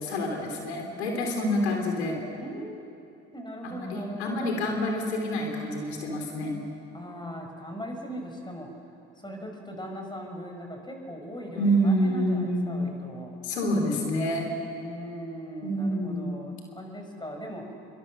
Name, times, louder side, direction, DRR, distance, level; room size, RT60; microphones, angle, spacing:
voice 1, 0.0-2.2 3.6-6.6 11.5-12.8 13.4-14.5 15.6-16.3, equal, 90° left, 1 dB, 3.1 m, -27 dB
voice 2, 2.4-2.8 3.3-4.7 6.9-8.7 9.2-13.4 14.7-17.7, equal, 15° left, 2 dB, 6.5 m, -39 dB
27.5 x 23.0 x 6.7 m, 2.7 s
hypercardioid pair, 55°, 32 cm